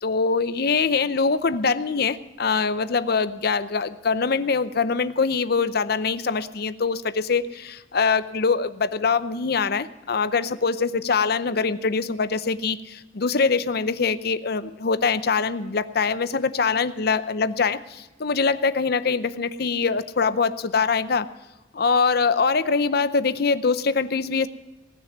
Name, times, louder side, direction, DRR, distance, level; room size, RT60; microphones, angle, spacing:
voice 1, 0.0-21.3 21.7-24.5, left 5 dB, 55° left, 13 dB, 0.6 m, -23 dB
18.5 x 6.7 x 9.2 m, 1.1 s
head